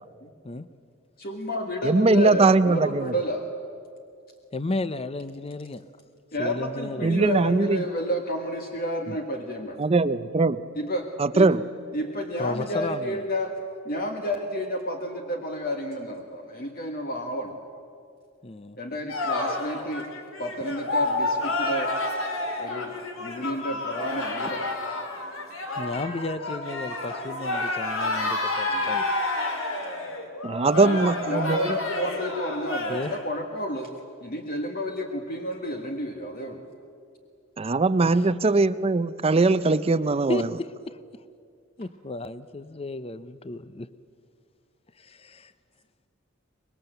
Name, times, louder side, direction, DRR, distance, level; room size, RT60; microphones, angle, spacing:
voice 1, 1.2-3.5 6.3-9.8 10.7-11.1 11.3-11.5 11.9-13.5 13.8-17.6 18.8-20.1 20.4-21.9 22.6-24.7 28.7-28.9 30.7-33.9 34.2-36.7, equal, 50° left, 3 dB, 1.6 m, -31 dB
voice 2, 1.8-3.1 7.0-7.8 9.8-10.6 11.2-11.6 30.4-31.8 37.6-40.5, right 3 dB, 30° right, 14 dB, 0.5 m, -21 dB
voice 3, 4.5-5.8 6.4-7.3 12.4-13.2 18.4-18.8 25.8-29.1 32.9-33.1 38.0-38.3 40.3-41.0 41.8-43.9 45.0-45.5, left 2 dB, 30° left, 14 dB, 0.6 m, -33 dB
sound 1, 19.1-33.2, left 2 dB, 80° left, 3.1 m, -30 dB
24.5 x 21.5 x 8.0 m, 2.4 s
head